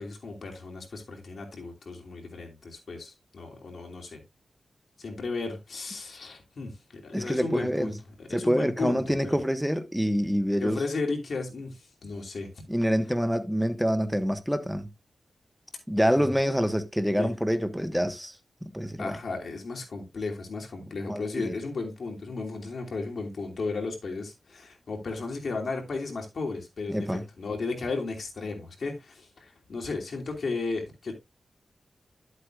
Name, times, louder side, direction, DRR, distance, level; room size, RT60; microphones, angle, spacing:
voice 1, 0.0-4.2 5.0-7.9 8.2-9.4 10.6-12.5 16.2-16.4 17.2-17.3 19.0-31.1, left 3 dB, 70° left, 2.8 m, -34 dB
voice 2, 7.1-7.9 8.3-10.8 12.7-14.9 15.9-18.3 18.6-19.1 21.1-21.5 26.9-27.2, equal, ahead, 1.4 m, -26 dB
11.0 x 8.2 x 2.5 m
cardioid pair, 65°, 0 cm